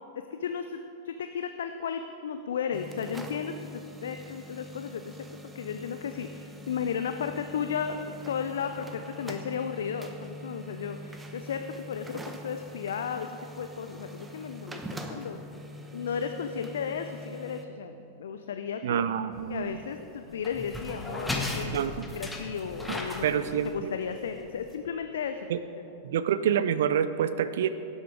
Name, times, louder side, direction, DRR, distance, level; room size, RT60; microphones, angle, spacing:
voice 1, 0.3-13.3 13.6-15.4 15.9-19.0 19.5-23.3 23.7-25.5 26.1-26.2, left 7 dB, 65° left, 7 dB, 0.5 m, -34 dB
sound 1, 2.7-17.7, equal, 10° right, 1.0 m, -44 dB
voice 2, 18.8-19.7 21.7-21.9 22.9-23.9 25.5-25.6 26.0-27.7, right 9 dB, 60° right, 12 dB, 0.4 m, -27 dB
sound 2, 19.3-24.7, left 2 dB, 5° left, 1.3 m, -37 dB
17.0 x 8.1 x 4.9 m, 3.0 s
figure-of-eight pair, 90°, 0 cm